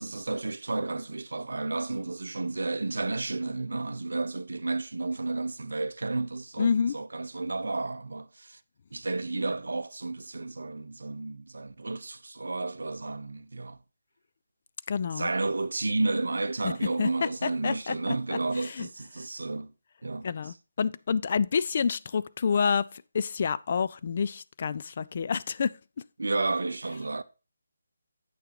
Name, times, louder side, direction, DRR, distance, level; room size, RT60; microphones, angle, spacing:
voice 1, 0.0-8.6 8.9-13.8 15.2-19.7 20.0-20.3 26.2-27.2, right 3 dB, 60° right, 0.6 m, -32 dB
voice 2, 6.6-7.0 14.9-15.3 16.6-16.7 17.0-17.9 18.6-18.9 20.2-25.7, left 6 dB, 40° left, 0.3 m, -28 dB
8.4 x 6.7 x 3.0 m
figure-of-eight pair, 150°, 0 cm